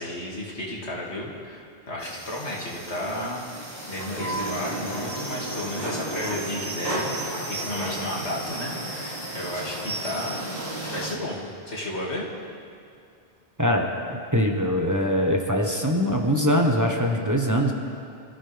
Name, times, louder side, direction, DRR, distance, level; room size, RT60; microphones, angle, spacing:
voice 1, 0.0-3.5 3.9-10.6 10.9-12.2, left 1 dB, 85° left, -4 dB, 3.0 m, -33 dB
sound 1, 2.0-11.1, right 1 dB, 55° right, 3.1 m, -33 dB
voice 2, 13.6-17.7, equal, 15° right, 0 dB, 1.4 m, -23 dB
26.5 x 14.5 x 3.6 m, 2.5 s
omnidirectional pair, 1.1 m